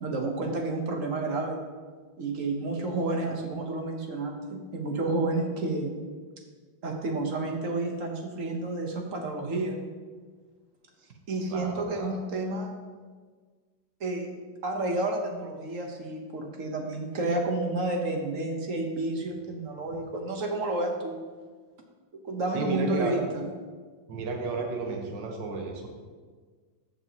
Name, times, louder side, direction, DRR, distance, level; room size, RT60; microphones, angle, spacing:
voice 1, 0.0-1.6 2.2-5.9 6.8-9.8 11.3-12.7 14.0-21.2 22.2-23.5, right 2 dB, 55° right, 2 dB, 1.1 m, -30 dB
voice 2, 11.5-12.1 19.9-20.0 22.5-23.2 24.1-25.9, right 3 dB, 70° right, 2 dB, 1.7 m, -32 dB
14.0 x 5.8 x 2.8 m, 1.5 s
omnidirectional pair, 2.0 m